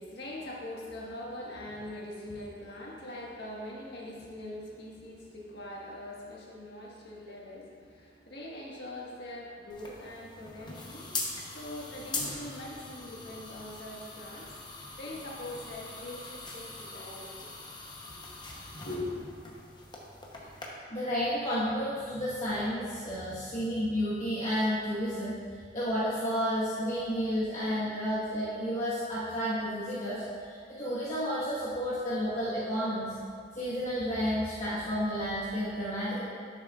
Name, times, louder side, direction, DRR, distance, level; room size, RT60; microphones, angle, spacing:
voice 1, 0.0-14.5 15.0-17.5 18.1-18.3 18.6-19.3, left 1 dB, 70° left, -4 dB, 1.5 m, -42 dB
sound 1, 9.7-20.7, left 3 dB, 25° left, 0.8 m, -42 dB
voice 2, 20.9-25.3 25.7-33.1 33.5-36.2, equal, 40° left, -11 dB, 1.4 m, -31 dB
10.5 x 6.7 x 2.4 m, 2.2 s
head